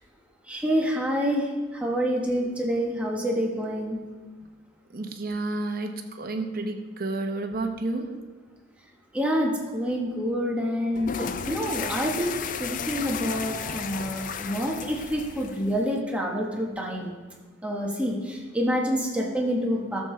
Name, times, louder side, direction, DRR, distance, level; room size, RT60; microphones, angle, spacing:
voice 1, 0.5-4.0 9.1-17.1 17.6-20.0, equal, 5° right, -2 dB, 1.0 m, -27 dB
voice 2, 4.9-8.2, right 2 dB, 45° right, 5 dB, 0.9 m, -30 dB
sound 1, 10.9-16.0, left 6 dB, 40° left, 0.4 m, -34 dB
14.0 x 7.3 x 3.2 m, 1.3 s
head